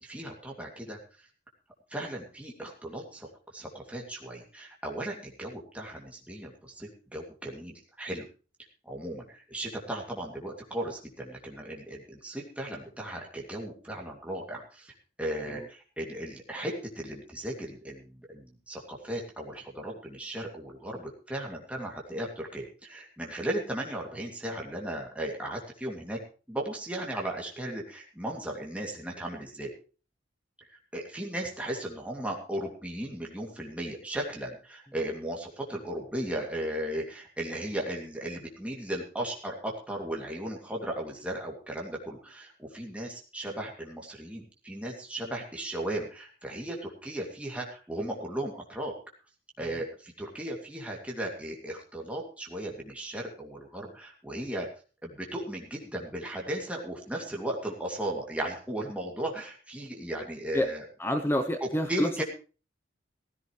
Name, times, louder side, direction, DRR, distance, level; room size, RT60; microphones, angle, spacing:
voice 1, 0.0-1.0 1.9-8.2 8.8-26.2 26.5-29.7 30.9-49.0 49.6-54.7 55.0-60.8 61.6-62.2, right 1 dB, 5° right, -1 dB, 2.6 m, -36 dB
voice 2, 61.0-62.1, equal, 10° left, 8 dB, 0.8 m, -28 dB
16.0 x 15.0 x 3.2 m, 0.35 s
head